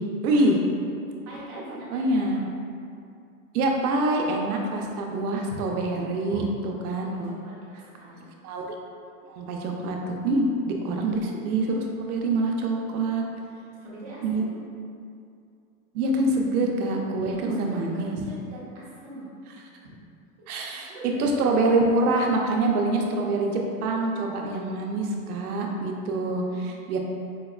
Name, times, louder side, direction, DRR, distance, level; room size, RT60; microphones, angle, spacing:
voice 1, 0.2-0.6 1.9-2.4 3.5-7.4 8.4-8.7 9.3-10.5 10.8-13.2 14.2-14.4 15.9-18.2 20.5-20.9 21.2-27.0, right 2 dB, 85° right, 1 dB, 0.6 m, -25 dB
voice 2, 1.3-2.2 6.2-6.4 7.2-8.3 13.8-14.6 17.2-19.4 20.4-20.5 20.9-21.2, right 1 dB, 25° right, -8 dB, 0.5 m, -43 dB
4.6 x 2.2 x 2.3 m, 2.4 s
supercardioid pair, 175°, 43 cm